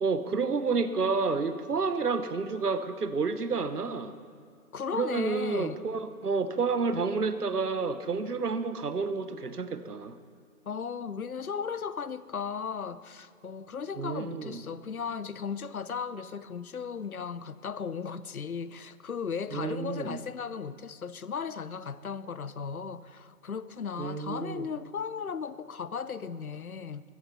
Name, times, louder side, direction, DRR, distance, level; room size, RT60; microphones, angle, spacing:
voice 1, 0.0-4.1 4.9-10.2 13.9-14.6 19.5-20.2 24.0-24.7, right 4 dB, 80° right, 1.1 m, -30 dB
voice 2, 4.7-5.8 10.7-27.0, left 6 dB, 65° left, 0.7 m, -36 dB
14.5 x 14.5 x 4.3 m
figure-of-eight pair, 180°, 46 cm